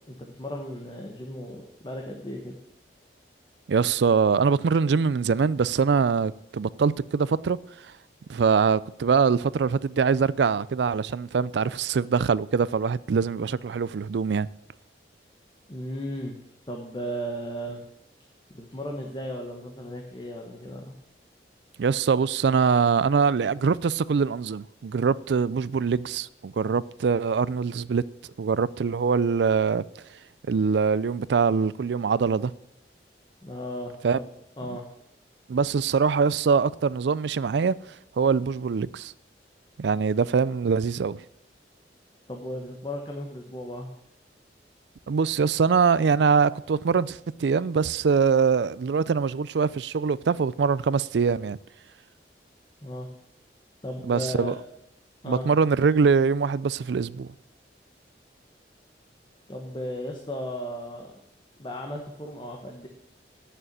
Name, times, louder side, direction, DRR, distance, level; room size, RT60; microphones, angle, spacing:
voice 1, 0.1-2.6 15.7-16.4 16.7-17.8 18.5-20.9 33.4-34.3 34.6-34.9 42.3-43.9 52.8-53.1 53.8-54.5 55.2-55.5 59.5-61.1 61.6-62.9, equal, 25° left, 1.2 m, -35 dB
voice 2, 3.7-7.6 8.3-14.5 21.8-28.0 28.4-29.8 30.5-32.5 34.0-34.2 35.5-37.8 38.2-39.1 39.8-41.2 45.1-51.6 54.1-54.5 55.2-57.3, right 5 dB, 75° right, 0.4 m, -23 dB
9.0 x 6.8 x 8.6 m
head